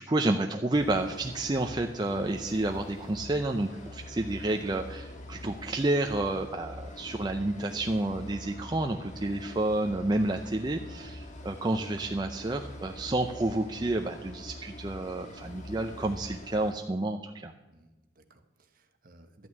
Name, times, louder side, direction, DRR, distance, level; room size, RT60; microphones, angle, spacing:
voice 1, 0.0-17.5, right 2 dB, 20° right, 4 dB, 0.5 m, -30 dB
sound 1, 0.7-16.7, left 1 dB, 40° left, 1.5 m, -45 dB
voice 2, 17.7-19.5, right 1 dB, 45° right, 6 dB, 1.2 m, -58 dB
12.5 x 6.1 x 9.2 m, 1.1 s
head